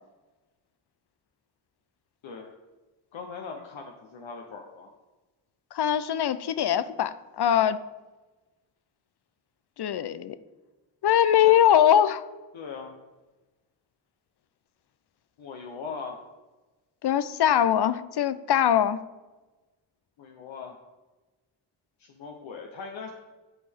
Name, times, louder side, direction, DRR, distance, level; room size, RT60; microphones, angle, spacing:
voice 1, 3.1-4.9 11.4-11.6 12.5-13.0 15.4-16.2 20.2-20.8 22.0-23.1, left 5 dB, 70° left, 1 dB, 0.9 m, -40 dB
voice 2, 5.7-7.8 9.8-10.4 11.0-12.2 17.0-19.0, left 10 dB, 55° left, 15 dB, 0.6 m, -22 dB
10.0 x 4.3 x 3.5 m, 1.2 s
supercardioid pair, 45°, 48 cm